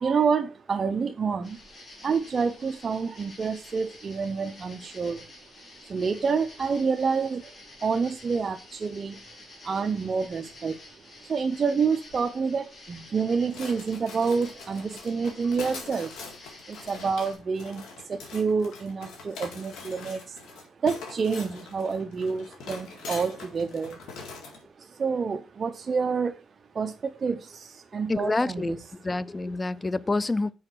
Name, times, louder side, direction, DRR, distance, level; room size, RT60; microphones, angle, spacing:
voice 1, 0.0-1.6 2.0-5.2 5.9-7.4 7.8-8.6 8.8-9.1 9.7-10.7 11.3-16.1 16.9-17.8 18.3-20.2 20.8-24.0 25.0-26.3 26.8-26.9 27.2-27.4 27.9-28.8, right 5 dB, 40° right, 0.6 m, -27 dB
sound 1, 1.4-17.4, left 2 dB, 45° left, 3.5 m, -50 dB
sound 2, 13.5-24.6, left 4 dB, 85° left, 1.9 m, -43 dB
voice 2, 28.1-28.8 29.0-30.5, left 2 dB, 20° left, 0.4 m, -27 dB
6.4 x 4.8 x 4.5 m
cardioid pair, 90°, 0 cm